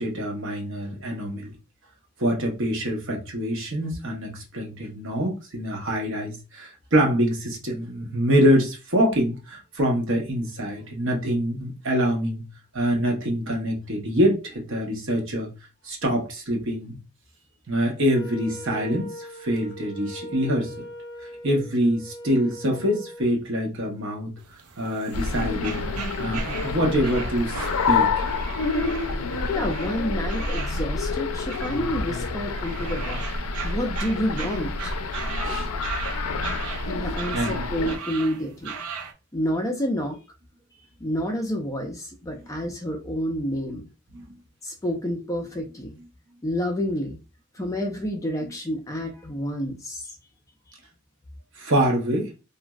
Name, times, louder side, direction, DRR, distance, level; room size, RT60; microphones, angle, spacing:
voice 1, 0.0-1.5 2.2-12.4 12.7-15.5 15.8-17.0 17.7-20.7 21.4-24.3 24.8-25.9 26.2-28.1 35.4-35.7 36.2-36.3 37.3-37.6 44.1-44.3 48.4-48.5 51.6-52.3, equal, 55° right, 0.9 m, -25 dB
Wind instrument woodwind instrument, 18.0-23.3, equal, 55° left, 0.9 m, -40 dB
sound 1, 24.4-39.1, right 6 dB, 85° right, 0.5 m, -38 dB
sound 2, 25.1-38.0, left 3 dB, 75° left, 0.4 m, -28 dB
voice 2, 29.5-33.2 33.6-34.9 36.9-38.8 39.3-40.2 41.0-43.9 44.6-46.0 46.4-47.2 47.5-50.1, equal, 15° left, 0.4 m, -29 dB
3.0 x 2.5 x 2.3 m
head